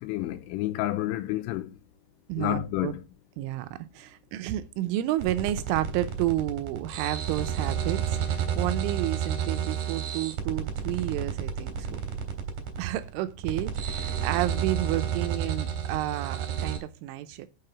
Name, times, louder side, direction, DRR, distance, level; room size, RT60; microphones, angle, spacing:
voice 1, 0.0-1.7 2.4-3.0, left 15 dB, 85° left, 3.3 m, -30 dB
voice 2, 2.3-2.9 3.4-12.0 12.8-17.5, right 14 dB, 80° right, 3.1 m, -31 dB
sound 1, 5.2-16.8, right 8 dB, 60° right, 2.6 m, -31 dB
6.8 x 6.4 x 6.6 m
omnidirectional pair, 5.8 m